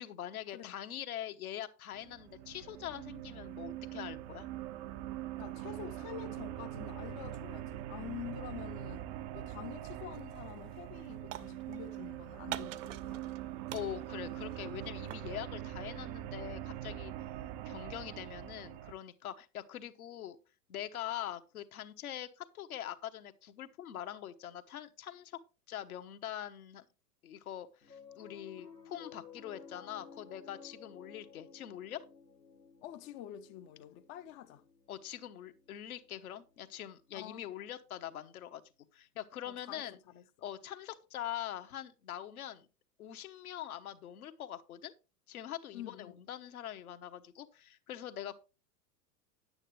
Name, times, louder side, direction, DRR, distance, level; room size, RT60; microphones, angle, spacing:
voice 1, 0.0-4.5 13.7-17.1 17.6-20.4 20.7-25.4 25.7-26.9 27.2-32.0 34.9-38.6 38.9-40.0 40.4-42.7 43.0-44.9 45.3-48.4, left 11 dB, 65° left, 1.2 m, -43 dB
sound 1, 1.9-18.9, right 12 dB, 30° right, 0.5 m, -43 dB
voice 2, 5.4-9.1 9.3-13.4 32.8-34.6 37.1-37.4 39.4-40.5 45.7-46.1, left 11 dB, 25° left, 0.6 m, -47 dB
sound 2, 10.1-10.4 10.7-12.0 12.5-13.4 13.7-15.3, right 13 dB, 50° right, 0.8 m, -45 dB
Piano, 27.8-38.3, left 6 dB, 85° left, 1.6 m, -56 dB
10.0 x 8.8 x 3.1 m
figure-of-eight pair, 95°, 47 cm